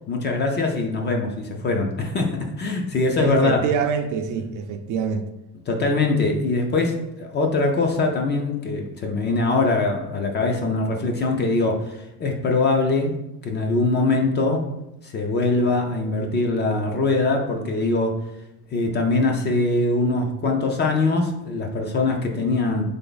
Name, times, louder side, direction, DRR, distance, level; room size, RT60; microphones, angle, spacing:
voice 1, 0.1-3.6 5.7-14.7 15.0-18.2 18.7-22.8, left 3 dB, 30° left, 0.4 m, -22 dB
voice 2, 3.2-5.3, right 6 dB, 55° right, 0.4 m, -25 dB
3.8 x 3.4 x 3.9 m
cardioid pair, 170°, 38 cm